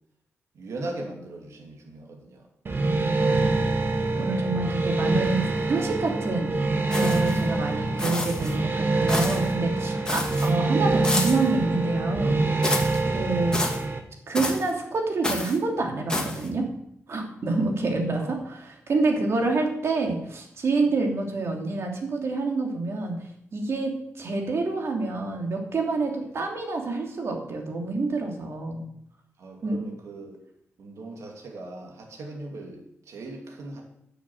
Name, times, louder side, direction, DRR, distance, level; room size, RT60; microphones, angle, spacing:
voice 1, 0.5-2.5 13.0-13.3 18.1-18.5 19.1-19.5 20.8-20.9 29.4-30.4 30.8-33.8, right 2 dB, 80° right, 1 dB, 2.6 m, -39 dB
sound 1, 2.7-14.0, right 3 dB, 45° right, 1.6 m, -25 dB
voice 2, 2.8-3.8 4.2-6.6 7.0-12.5 13.1-13.6 14.3-16.6 17.1-18.2 18.5-18.6 18.9-23.1 23.5-28.9 29.6-29.8, right 3 dB, 60° right, 2 dB, 2.8 m, -27 dB
sound 2, 6.9-7.4 8.0-8.5 9.1-9.5 10.1-10.5 11.0-11.5 12.6-13.0 13.5-13.8 14.4-14.7 15.2-15.6 16.1-16.5, left 2 dB, 15° left, 2.3 m, -29 dB
10.5 x 7.1 x 7.9 m, 0.74 s
cardioid pair, 100°, 5 cm